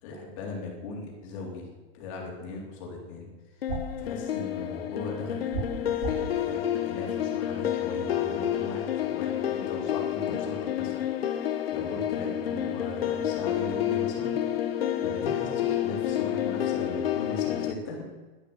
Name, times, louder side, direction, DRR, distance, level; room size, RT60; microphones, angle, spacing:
voice 1, 0.0-1.7 1.9-3.3 4.0-14.3 15.0-18.0, left 3 dB, 30° left, 0 dB, 3.6 m, -38 dB
sound 1, 3.6-17.7, left 11 dB, 70° left, 1.4 m, -29 dB
sound 2, 3.7-4.0 5.5-6.3, right 5 dB, 75° right, 6.6 m, -33 dB
12.5 x 12.0 x 7.9 m, 1.2 s
supercardioid pair, 180°, 31 cm